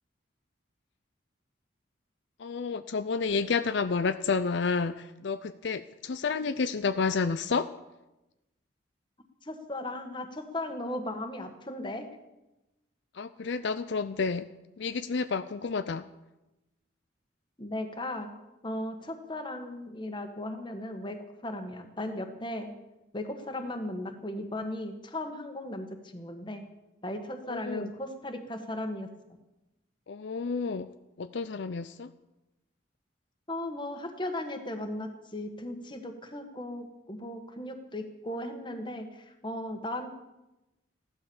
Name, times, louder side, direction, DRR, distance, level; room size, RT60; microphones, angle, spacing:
voice 1, 2.4-7.7 13.1-14.5 14.8-16.1 27.5-27.9 30.1-30.9 31.2-32.1, left 4 dB, 65° left, 11 dB, 0.5 m, -30 dB
voice 2, 9.4-12.1 17.6-18.3 18.6-22.7 23.1-26.6 27.0-29.1 33.5-40.1, left 1 dB, 25° left, 6 dB, 1.6 m, -37 dB
15.5 x 12.0 x 7.1 m, 0.99 s
head